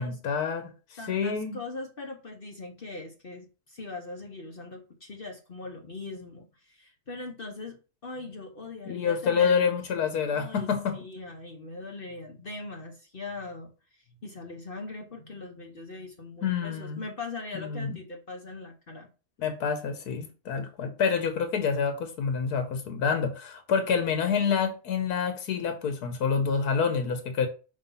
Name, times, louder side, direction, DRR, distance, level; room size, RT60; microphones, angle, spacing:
voice 1, 0.0-1.6 8.9-11.0 16.4-17.0 17.5-18.0 19.4-27.5, left 6 dB, 85° left, 1.5 m, -27 dB
voice 2, 1.0-9.7 10.2-19.1, left 3 dB, 40° left, 1.0 m, -41 dB
5.7 x 3.3 x 5.3 m
omnidirectional pair, 1.6 m